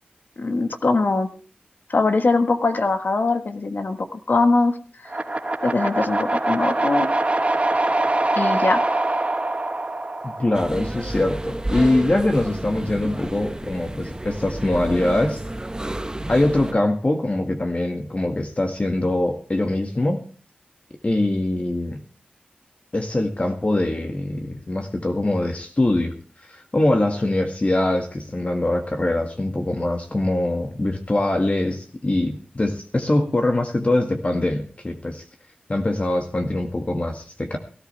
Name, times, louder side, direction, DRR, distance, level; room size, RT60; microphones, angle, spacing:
voice 1, 0.4-1.3 1.9-4.8 5.0-5.1 5.6-7.1 8.4-8.8, left 3 dB, 70° left, 7 dB, 1.5 m, -21 dB
sound 1, 5.1-11.2, right 2 dB, 40° right, 2.5 m, -23 dB
voice 2, 10.2-15.4 16.3-20.2 21.0-22.0 22.9-26.1 26.5-35.2 35.7-37.6, left 1 dB, 40° left, 4 dB, 1.8 m, -23 dB
sound 2, 10.5-16.7, right 1 dB, 20° right, 0.9 m, -31 dB
17.5 x 13.5 x 3.4 m, 0.39 s
wide cardioid pair, 60°, 3 cm